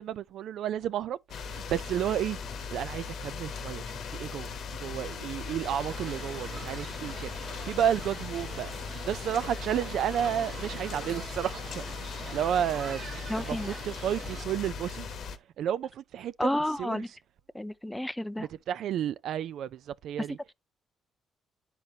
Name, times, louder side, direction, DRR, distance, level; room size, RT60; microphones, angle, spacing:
voice 1, 0.0-2.4 2.7-8.7 9.0-11.8 12.3-13.1 13.4-15.1 15.6-16.5 16.8-17.0 18.4-20.4, right 10 dB, 75° right, 0.3 m, -32 dB
sound 1, 1.3-15.4, left 5 dB, 70° left, 0.9 m, -38 dB
sound 2, 5.6-14.4, right 5 dB, 60° right, 1.0 m, -45 dB
voice 2, 13.3-13.8 16.4-17.1 17.5-18.5, left 1 dB, 5° left, 0.4 m, -31 dB
10.5 x 4.3 x 2.8 m
cardioid pair, 90°, 0 cm